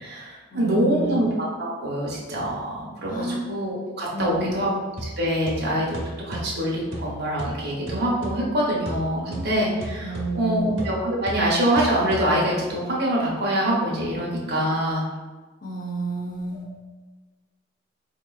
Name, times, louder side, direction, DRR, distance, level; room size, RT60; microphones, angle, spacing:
voice 1, 0.0-4.7 5.0-6.0 6.3-15.0 16.5-16.6, right 1 dB, 55° right, -4 dB, 0.9 m, -25 dB
voice 2, 0.5-1.2 3.1-3.5 4.1-4.5 10.0-10.8 15.6-16.7, right 3 dB, 45° left, -1 dB, 0.7 m, -30 dB
sound 1, 5.0-12.7, right 1 dB, 90° right, 1.0 m, -36 dB
4.4 x 2.9 x 2.4 m, 1.3 s
head